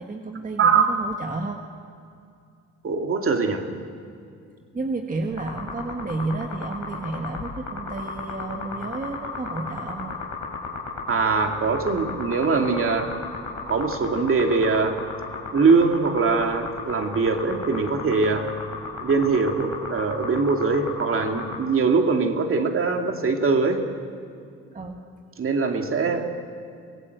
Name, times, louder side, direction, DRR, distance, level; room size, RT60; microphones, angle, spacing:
voice 1, 0.0-1.6 4.7-10.2 24.7-25.0, right 3 dB, 25° right, 3 dB, 1.6 m, -31 dB
voice 2, 0.6-0.9 2.8-3.7 11.1-13.1 13.7-15.0 15.5-18.5 19.0-23.8 25.4-26.3, right 4 dB, 45° right, 4 dB, 2.4 m, -22 dB
sound 1, 5.3-21.6, left 4 dB, 65° left, 4.8 m, -34 dB
24.0 x 16.5 x 8.0 m, 2.4 s
cardioid pair, 90°, 30 cm